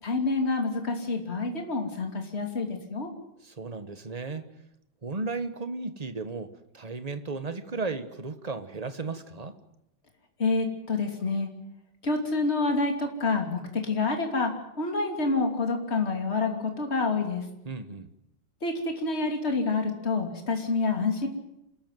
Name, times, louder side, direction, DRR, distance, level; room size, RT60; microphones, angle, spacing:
voice 1, 0.0-3.1 10.4-11.5 12.0-17.4 18.6-21.3, left 3 dB, 30° left, 3 dB, 3.1 m, -28 dB
voice 2, 3.4-4.5 5.0-9.6 17.6-18.1, right 3 dB, 25° right, 10 dB, 1.0 m, -35 dB
27.5 x 14.5 x 9.2 m, 0.84 s
omnidirectional pair, 2.4 m